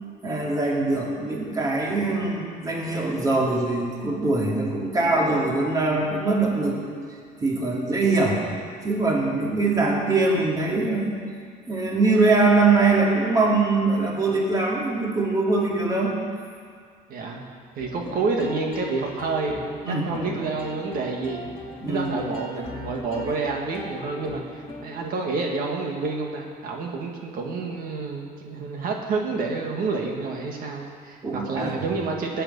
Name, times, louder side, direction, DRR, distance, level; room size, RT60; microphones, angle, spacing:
voice 1, 0.2-6.8 7.4-8.4 8.8-11.2 11.7-16.1 19.8-20.2 21.8-22.3 31.2-31.7, right 3 dB, 20° right, -2 dB, 2.4 m, -22 dB
voice 2, 17.1-17.5 17.8-19.8 20.1-21.5 21.9-32.4, right 3 dB, 60° right, 1 dB, 1.8 m, -29 dB
sound 1, 17.8-25.1, left 1 dB, 35° left, 2.4 m, -40 dB
19.0 x 9.0 x 5.4 m, 2.1 s
cardioid pair, 150°, 16 cm